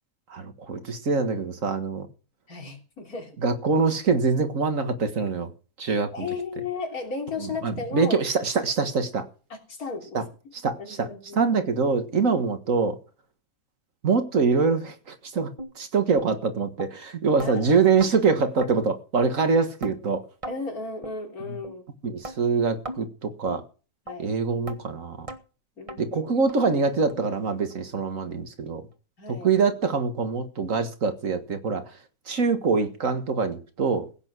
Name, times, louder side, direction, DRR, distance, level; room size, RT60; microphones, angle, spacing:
voice 1, 0.3-2.1 3.4-5.5 5.8-6.3 7.4-9.3 10.1-10.2 10.6-11.1 11.3-13.0 14.0-15.5 15.8-20.2 22.0-23.6 24.2-25.3 26.0-28.8 29.4-31.8 32.3-34.1, right 4 dB, 65° right, 2.0 m, -24 dB
voice 2, 2.5-3.3 5.8-8.2 9.5-10.2 10.8-11.5 17.4-17.8 20.5-21.9 24.1-24.3 25.8-26.3 29.2-29.5, left 4 dB, 90° left, 3.7 m, -35 dB
sound 1, 15.6-15.7 16.2-16.3 16.8-16.9 17.4-17.5 18.0-18.1 18.6-18.7 19.2-19.3 19.8-20.0 20.4-20.6 21.0-21.2 21.6-21.8 22.2-22.4 22.9-23.0 23.5-23.6 24.1-24.2 24.7-24.8 25.3-25.4 25.9-26.0 26.5-26.6 27.1-27.2 27.7-27.8 28.3-28.4, right 2 dB, 25° right, 1.4 m, -37 dB
16.0 x 8.9 x 6.1 m
omnidirectional pair, 1.5 m